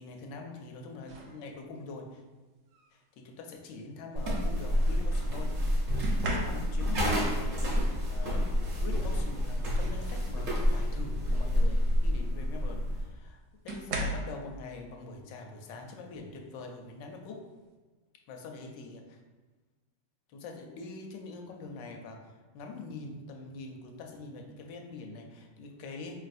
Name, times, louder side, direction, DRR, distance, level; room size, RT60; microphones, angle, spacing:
voice 1, 0.0-2.2 2.9-7.7 8.1-17.4 18.3-19.2 20.3-26.2, left 3 dB, 80° left, 2 dB, 1.2 m, -44 dB
sound 1, 1.1-1.4 2.7-2.9 6.0-7.0 8.8-8.9 9.3-10.4 10.9-11.1 12.5-12.6 13.7-14.4 16.1-16.3 16.8-17.1, right 1 dB, 70° right, 1.1 m, -37 dB
sound 2, 4.2-13.1, equal, 50° right, 0.9 m, -29 dB
4.6 x 3.2 x 2.5 m, 1.3 s
omnidirectional pair, 1.9 m